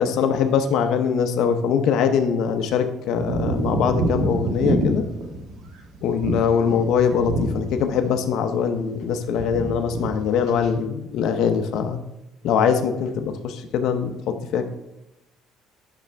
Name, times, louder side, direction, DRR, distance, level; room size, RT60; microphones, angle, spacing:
voice 1, 0.0-5.0 6.0-12.0 12.4-14.7, left 7 dB, 65° left, 7 dB, 0.6 m, -22 dB
sound 1, 3.2-8.1 8.4-9.0 9.3-10.1 10.4-10.7, right 2 dB, 80° right, 1.3 m, -26 dB
9.8 x 6.2 x 3.3 m, 0.95 s
cardioid pair, 155°, 0 cm